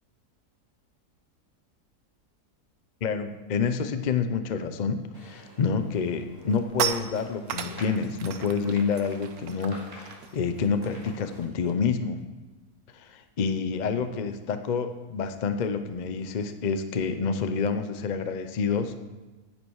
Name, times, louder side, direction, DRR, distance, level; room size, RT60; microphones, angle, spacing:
voice 1, 3.0-12.2 12.9-19.0, left 5 dB, 60° left, 9 dB, 0.4 m, -28 dB
sound 1, 5.1-11.5, equal, 15° right, 3.0 m, -49 dB
sound 2, 5.4-5.7 6.0-12.0 12.2-12.5 12.8-17.8, right 8 dB, 70° right, 1.2 m, -38 dB
9.8 x 9.5 x 4.6 m, 1.2 s
omnidirectional pair, 1.7 m